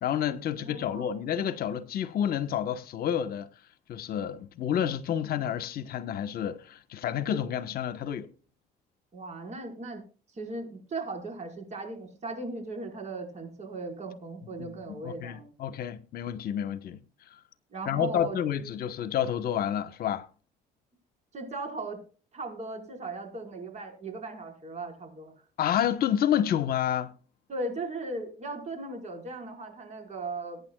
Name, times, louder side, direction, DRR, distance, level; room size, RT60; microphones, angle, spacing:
voice 1, 0.0-3.5 3.9-8.3 14.6-17.0 17.3-17.4 17.9-20.3 25.6-27.1, left 9 dB, 65° left, 1.2 m, -29 dB
voice 2, 0.6-1.2 9.1-10.0 10.3-15.5 17.7-18.4 21.3-22.0 22.3-25.3 27.5-30.6, right 2 dB, 40° right, 5.1 m, -37 dB
22.0 x 9.5 x 2.4 m
cardioid pair, 110°, 17 cm